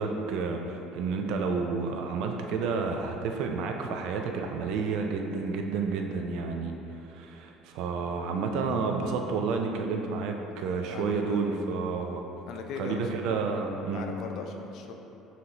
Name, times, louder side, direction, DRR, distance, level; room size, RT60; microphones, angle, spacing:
voice 1, 0.0-6.7 7.0-12.2 12.8-14.1, right 4 dB, 70° right, 3 dB, 0.3 m, -30 dB
voice 2, 10.9-11.6 12.5-13.4 13.9-14.9, left 4 dB, 60° left, 3 dB, 0.4 m, -38 dB
5.6 x 2.6 x 2.9 m, 2.9 s
cardioid pair, 125°, 0 cm